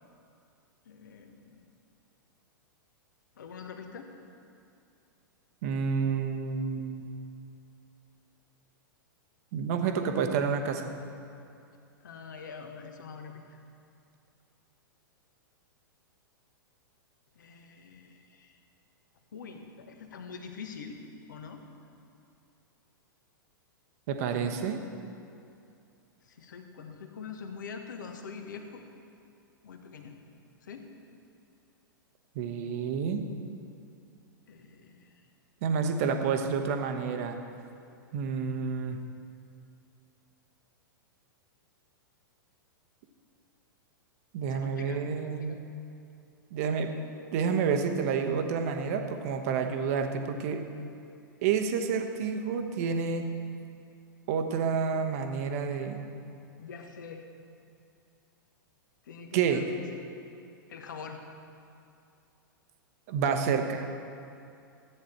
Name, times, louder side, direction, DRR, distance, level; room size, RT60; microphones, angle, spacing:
voice 1, 0.9-1.7 3.4-4.1 12.0-13.6 17.4-18.6 19.3-21.6 26.2-28.8 29.6-30.2 30.6-30.9 34.5-35.1 44.5-45.6 56.6-57.2 59.0-59.7 60.7-61.2, left 5 dB, 60° left, 5 dB, 1.2 m, -44 dB
voice 2, 5.6-7.1 9.5-10.9 24.1-24.8 32.3-33.2 35.6-37.4 38.1-39.0 44.3-45.6 46.5-46.9 47.3-50.6 51.4-53.3 54.3-56.0 59.3-59.6 63.1-63.9, right 6 dB, 45° right, 5 dB, 1.1 m, -29 dB
14.0 x 9.0 x 4.4 m, 2.5 s
figure-of-eight pair, 100°, 11 cm